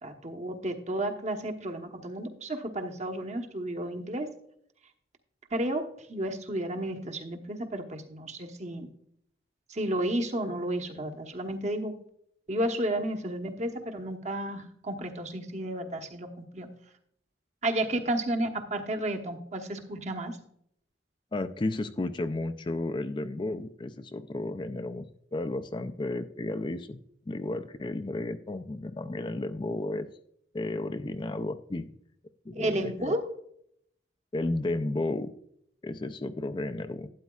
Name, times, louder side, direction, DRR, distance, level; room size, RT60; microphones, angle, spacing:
voice 1, 0.0-4.3 5.5-8.9 9.7-11.9 12.5-16.7 17.6-20.4 32.5-33.2, right 1 dB, 40° right, 4 dB, 1.0 m, -32 dB
voice 2, 21.3-25.0 25.3-30.1 30.5-31.9 32.5-33.2 34.3-35.3 35.8-37.1, left 2 dB, 25° left, 10 dB, 0.4 m, -33 dB
12.0 x 9.5 x 2.3 m, 0.69 s
head